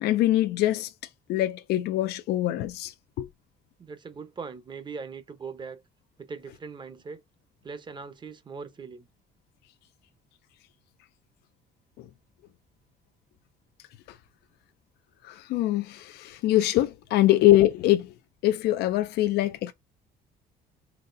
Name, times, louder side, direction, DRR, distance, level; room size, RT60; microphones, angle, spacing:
voice 1, 0.0-0.9 1.3-3.3 12.0-12.1 14.1-14.2 15.2-18.1 18.4-19.7, left 15 dB, 75° left, 0.4 m, -23 dB
voice 2, 3.8-5.8 6.2-7.2 7.6-9.1, right 5 dB, 25° right, 0.7 m, -40 dB
4.1 x 3.1 x 2.5 m
cardioid pair, 110°, 17 cm